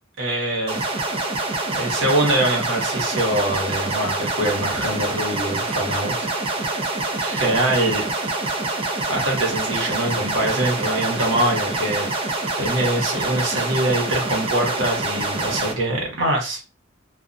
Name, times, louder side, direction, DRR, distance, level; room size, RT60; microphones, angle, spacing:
voice 1, 0.2-0.8 1.7-6.1 7.2-8.0 9.1-16.6, right 1 dB, 80° right, -1 dB, 1.0 m, -24 dB
sound 1, 0.7-15.7, right 2 dB, 30° right, 0.5 m, -26 dB
2.4 x 2.1 x 2.5 m, 0.29 s
head